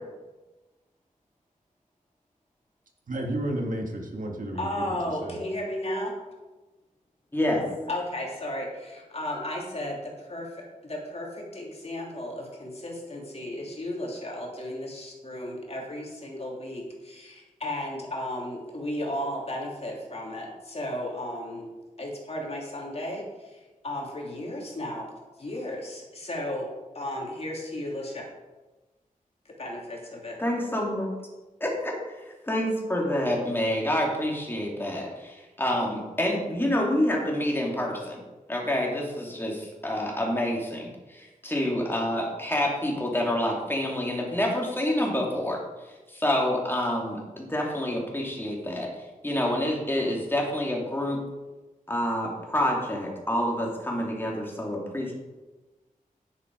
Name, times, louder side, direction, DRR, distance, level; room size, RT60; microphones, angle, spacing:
voice 1, 3.1-5.4, right 1 dB, 70° right, 1 dB, 1.9 m, -32 dB
voice 2, 4.6-6.1 7.9-10.5 10.8-21.7 22.0-25.1 25.4-26.7 26.9-28.3 29.4-30.4, left 1 dB, 45° left, -1 dB, 2.7 m, -34 dB
voice 3, 7.3-7.6 30.4-31.1 31.6-38.2 38.5-48.9 49.2-51.2 51.9-55.1, left 1 dB, 15° left, -2 dB, 2.9 m, -28 dB
10.0 x 9.8 x 4.8 m, 1.2 s
wide cardioid pair, 115°, 14 cm